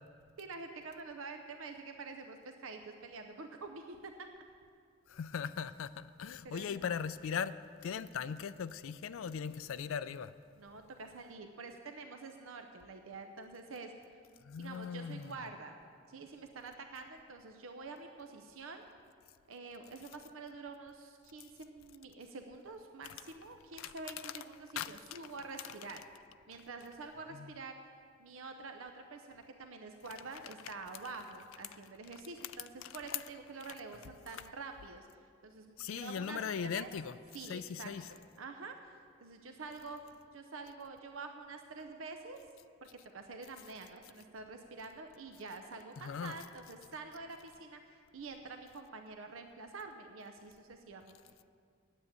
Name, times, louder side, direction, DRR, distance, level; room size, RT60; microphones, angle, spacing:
voice 1, 0.4-4.3 6.4-6.7 10.6-13.9 14.6-15.7 16.1-18.8 19.5-26.0 26.5-27.8 28.2-35.1 35.4-36.9 37.3-38.9 39.2-40.0 40.3-42.4 43.1-51.2, right 3 dB, 70° right, 5 dB, 0.7 m, -47 dB
voice 2, 5.1-7.6 7.8-10.3 14.4-15.3 23.8-23.9 24.2-24.3 24.7-25.2 27.3-27.5 32.8-33.2 34.3-34.4 35.8-37.2 37.4-38.1 46.0-46.4, left 7 dB, 70° left, 13 dB, 0.4 m, -39 dB
9.7 x 8.1 x 8.8 m, 2.2 s
head